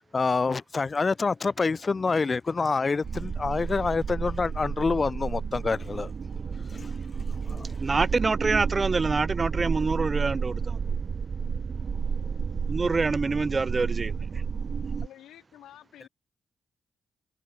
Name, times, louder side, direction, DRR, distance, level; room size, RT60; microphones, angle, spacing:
voice 1, 0.0-6.1 6.7-6.9 7.3-7.8, left 4 dB, 40° left, 0.3 m, -27 dB
sound 1, 3.0-15.1, right 6 dB, 55° right, 1.0 m, -31 dB
voice 2, 7.8-10.8 12.7-14.2, right 4 dB, 35° right, 0.4 m, -26 dB
voice 3, 15.0-16.1, left 12 dB, 90° left, 1.6 m, -50 dB
cardioid pair, 65°, 0 cm